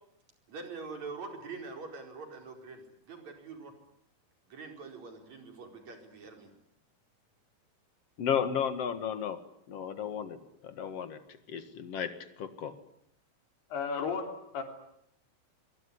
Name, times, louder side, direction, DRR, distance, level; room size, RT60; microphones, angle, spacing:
voice 1, 0.5-3.7 4.5-6.5, right 4 dB, 45° right, 4 dB, 5.8 m, -44 dB
voice 2, 8.2-9.4 9.7-10.4 10.6-11.2 11.5-12.8, left 8 dB, 50° left, 10 dB, 2.1 m, -33 dB
voice 3, 13.7-14.6, left 5 dB, 80° left, 4 dB, 5.2 m, -34 dB
24.5 x 23.0 x 9.8 m, 0.72 s
omnidirectional pair, 4.6 m